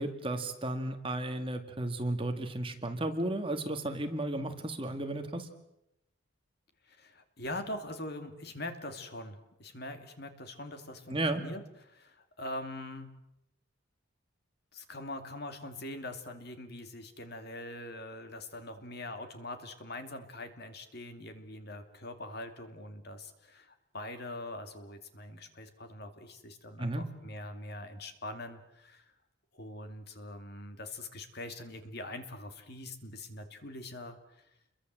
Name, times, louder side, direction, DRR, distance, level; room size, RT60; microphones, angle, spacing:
voice 1, 0.0-5.5 11.1-11.4 26.8-27.1, right 1 dB, 25° right, 6 dB, 2.0 m, -34 dB
voice 2, 6.9-13.1 14.7-29.1 29.5-34.4, left 1 dB, 50° left, 7 dB, 2.7 m, -43 dB
29.0 x 23.0 x 7.7 m, 0.85 s
head